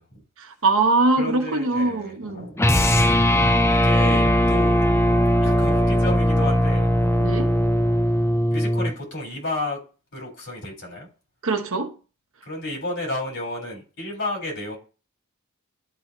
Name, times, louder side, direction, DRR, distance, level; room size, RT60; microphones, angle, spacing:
voice 1, 0.4-2.5 7.2-7.5 11.4-11.9, right 3 dB, 65° right, 1.2 m, -22 dB
voice 2, 1.2-3.2 3.7-4.8 5.4-6.9 8.5-9.8 10.1-11.1 12.4-14.8, left 2 dB, 60° left, 4.3 m, -32 dB
sound 1, 2.6-9.0, equal, 10° left, 0.6 m, -19 dB
12.0 x 4.2 x 3.1 m
head